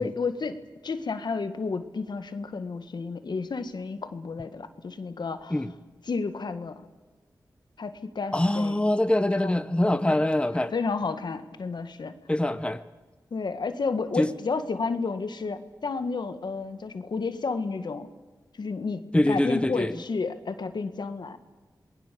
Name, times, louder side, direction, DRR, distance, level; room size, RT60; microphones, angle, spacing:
voice 1, 0.0-5.6 6.1-6.8 7.8-8.8 9.4-9.5 10.1-10.2 10.7-12.1 13.3-18.1 18.6-21.4, left 4 dB, 70° left, 9 dB, 1.7 m, -31 dB
voice 2, 8.3-10.7 12.3-12.8 14.2-14.4 19.1-20.0, left 1 dB, 15° left, 11 dB, 1.0 m, -24 dB
28.0 x 20.0 x 6.9 m, 1.3 s
wide cardioid pair, 65°, 8 cm